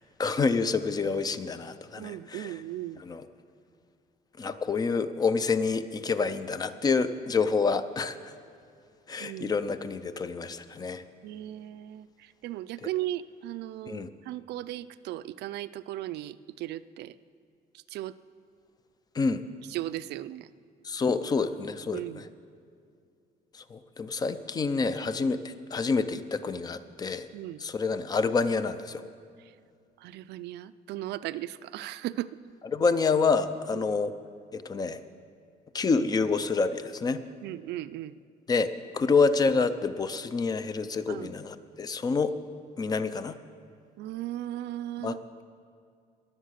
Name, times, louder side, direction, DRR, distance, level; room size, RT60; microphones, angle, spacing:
voice 1, 0.0-2.5 3.0-3.2 4.4-8.3 9.1-11.0 13.9-14.1 19.1-19.4 20.8-22.2 23.5-27.3 27.6-29.0 32.7-34.1 34.5-35.0 35.7-37.2 38.5-38.7 38.9-42.3 42.8-43.4 45.0-45.4, left 4 dB, 25° left, 12 dB, 0.4 m, -28 dB
voice 2, 2.0-3.0 9.2-9.5 11.2-17.2 17.7-18.2 19.7-20.5 21.9-22.3 27.3-27.6 29.4-29.5 30.0-32.3 33.7-33.8 37.4-38.2 41.1-41.3 44.0-45.2, right 14 dB, 85° right, 15 dB, 0.4 m, -37 dB
20.5 x 7.5 x 6.5 m, 2.3 s
cardioid pair, 175°, 17 cm